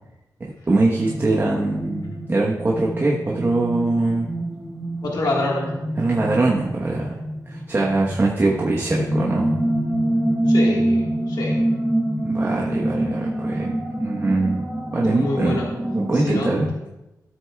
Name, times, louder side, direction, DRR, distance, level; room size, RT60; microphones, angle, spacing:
voice 1, 0.7-4.3 6.0-7.2 7.5-9.6 12.2-14.6 14.9-15.6 15.9-16.7, right 2 dB, 35° right, -4 dB, 1.1 m, -22 dB
sound 1, 0.9-16.7, right 1 dB, 5° right, 2.1 m, -26 dB
voice 2, 5.0-5.7 10.5-11.6 15.0-15.7 16.1-16.5, left 2 dB, 90° left, -2 dB, 1.6 m, -26 dB
13.5 x 7.8 x 2.3 m, 0.98 s
wide cardioid pair, 120°, 7 cm